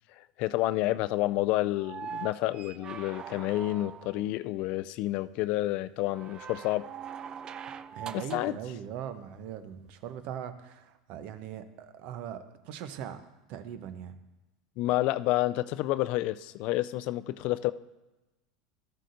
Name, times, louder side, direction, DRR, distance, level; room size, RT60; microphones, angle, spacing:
voice 1, 0.2-6.9 8.1-8.5 14.8-17.7, left 17 dB, 55° left, 15 dB, 0.3 m, -29 dB
sound 1, 1.8-4.3 6.1-8.6 10.2-10.3, right 7 dB, 30° right, 0.3 m, -42 dB
voice 2, 7.9-14.2, right 9 dB, 55° right, 10 dB, 0.8 m, -40 dB
13.5 x 7.5 x 2.6 m, 1.1 s
hypercardioid pair, 85°, 2 cm